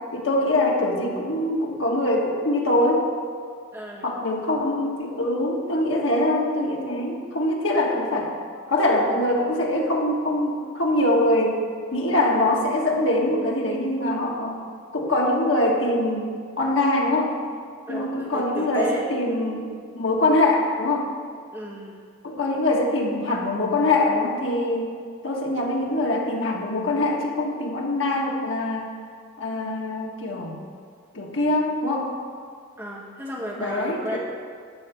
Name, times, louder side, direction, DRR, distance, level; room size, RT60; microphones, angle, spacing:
voice 1, 0.1-3.1 4.0-8.3 8.7-14.6 14.9-17.3 17.9-21.1 22.2-24.9 25.2-28.9 29.4-30.6 31.1-32.1 33.6-34.2, left 1 dB, 75° left, -1 dB, 1.5 m, -23 dB
voice 2, 3.7-4.1 17.9-19.0 21.5-22.0 32.8-34.2, right 1 dB, 10° right, -4 dB, 1.6 m, -33 dB
12.0 x 4.0 x 7.9 m, 2.1 s
head